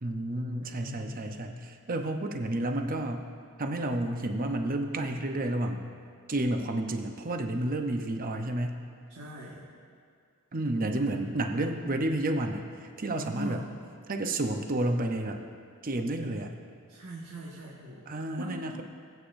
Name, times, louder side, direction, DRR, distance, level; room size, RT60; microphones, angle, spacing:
voice 1, 0.0-3.3 3.6-5.9 6.3-8.8 10.5-13.6 14.1-15.4 15.8-16.5 18.1-18.8, right 1 dB, 40° right, 4 dB, 0.8 m, -31 dB
voice 2, 0.6-1.4 9.1-9.6 10.8-11.0 13.1-13.6 16.9-18.6, equal, 70° right, -6 dB, 1.6 m, -41 dB
21.5 x 8.7 x 2.6 m, 2.2 s
head